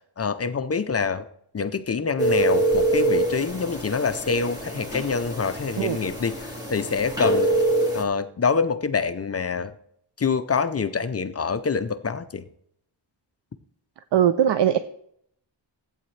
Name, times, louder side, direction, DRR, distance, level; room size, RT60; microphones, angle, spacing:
voice 1, 0.2-1.2 1.5-7.5 7.9-9.7 10.2-12.4, left 5 dB, 35° left, 11 dB, 0.5 m, -26 dB
sound 1, 2.2-8.0, right 2 dB, 10° right, 2.1 m, -25 dB
voice 2, 14.1-14.8, right 10 dB, 70° right, 12 dB, 0.5 m, -20 dB
14.5 x 8.6 x 3.2 m, 0.69 s
wide cardioid pair, 150°, 44 cm